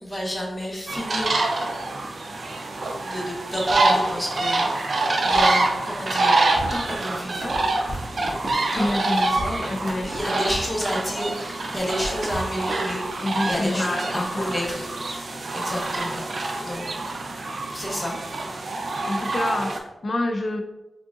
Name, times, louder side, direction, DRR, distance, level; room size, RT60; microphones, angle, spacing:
voice 1, 0.0-1.5 3.0-4.6 5.2-6.3 6.7-7.6 8.7-9.6 10.0-16.2 16.6-16.8 17.7-18.2, equal, 20° left, -2 dB, 1.2 m, -30 dB
sound 1, 0.9-19.8, right 2 dB, 65° right, 0.5 m, -26 dB
sound 2, 6.5-11.4 12.0-13.2, right 1 dB, 40° right, 1.5 m, -36 dB
voice 2, 8.8-10.5 13.2-14.6 19.0-20.6, left 2 dB, 55° left, 6 dB, 0.5 m, -28 dB
3.7 x 3.6 x 2.5 m, 0.99 s
cardioid pair, 50°, 0 cm